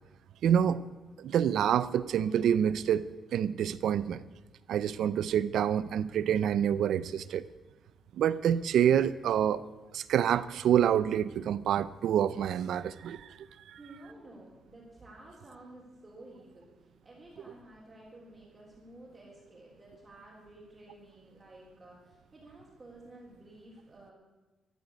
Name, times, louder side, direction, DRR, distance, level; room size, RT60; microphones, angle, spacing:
voice 1, 0.4-0.8 1.2-3.1 3.3-4.2 4.7-7.5 8.2-9.6 9.9-13.3, right 9 dB, 70° right, 17 dB, 0.6 m, -27 dB
voice 2, 13.8-24.1, right 1 dB, 20° right, -7 dB, 3.7 m, -52 dB
13.5 x 9.4 x 8.3 m, 1.1 s
cardioid pair, 160°, 0 cm